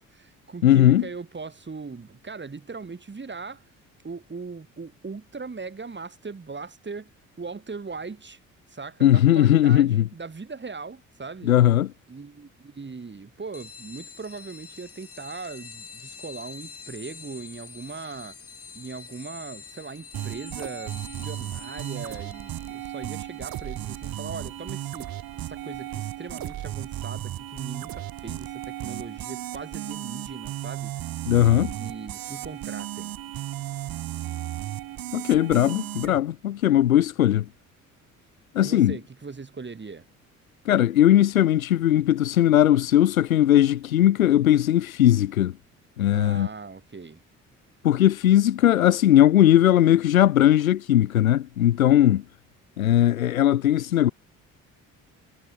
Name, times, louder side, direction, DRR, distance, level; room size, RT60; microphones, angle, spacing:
voice 1, 0.0-3.6 4.0-7.1 7.4-8.4 8.7-11.5 12.1-18.4 18.7-25.1 25.4-30.9 31.5-33.2 38.6-40.1 46.1-47.2, right 4 dB, 25° right, 5.8 m, -39 dB
voice 2, 0.6-1.0 9.0-10.1 11.4-11.9 31.3-31.7 35.1-37.4 38.5-39.0 40.6-45.5 46.0-46.5 47.8-52.2 52.8-54.1, left 12 dB, 80° left, 1.5 m, -19 dB
sound 1, 13.5-25.6, left 6 dB, 35° left, 5.2 m, -46 dB
sound 2, 20.1-36.2, right 13 dB, 55° right, 5.5 m, -35 dB
figure-of-eight pair, 50°, 41 cm